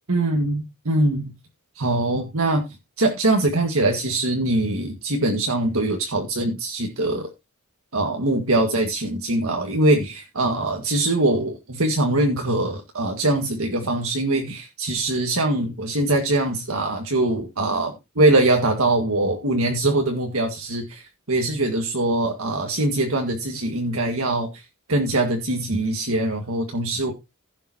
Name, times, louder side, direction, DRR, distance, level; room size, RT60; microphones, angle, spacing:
voice 1, 0.1-1.3 1.8-2.6 3.0-7.3 7.9-27.1, right 2 dB, 70° right, 1.8 m, -22 dB
15.5 x 7.2 x 2.9 m
head